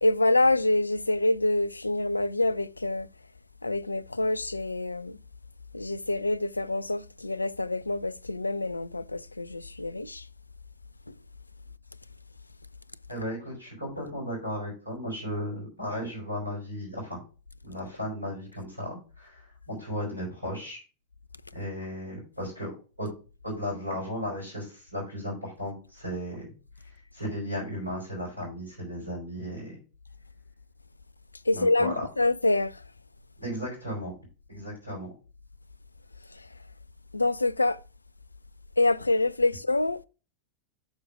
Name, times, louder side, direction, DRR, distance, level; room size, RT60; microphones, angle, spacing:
voice 1, 0.0-3.1 3.6-5.2 5.7-10.3 11.1-11.2 31.5-32.8 36.3-36.5 37.1-37.8 38.8-40.0, left 2 dB, 80° left, 0.3 m, -26 dB
voice 2, 13.1-17.2 17.6-20.8 21.5-22.7 23.0-23.1 23.4-26.5 27.1-29.8 31.5-32.1 33.4-34.1 34.5-35.1, equal, 85° right, 4.3 m, -35 dB
6.2 x 5.2 x 5.0 m
figure-of-eight pair, 90°, 0 cm